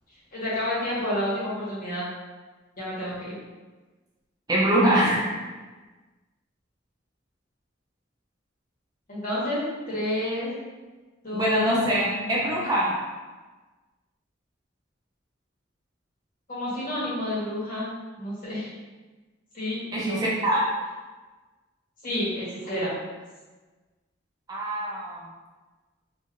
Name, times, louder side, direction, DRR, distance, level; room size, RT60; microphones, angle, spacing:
voice 1, 0.3-2.0 2.8-3.3 9.1-10.5 11.2-11.8 16.5-17.9 18.2-18.7 19.5-20.4 22.0-22.9, left 1 dB, 45° left, -9 dB, 1.3 m, -30 dB
voice 2, 4.5-5.3 11.3-13.0 19.9-20.6 24.5-25.2, right 1 dB, 20° right, -5 dB, 0.4 m, -23 dB
3.0 x 2.6 x 2.5 m, 1.3 s
head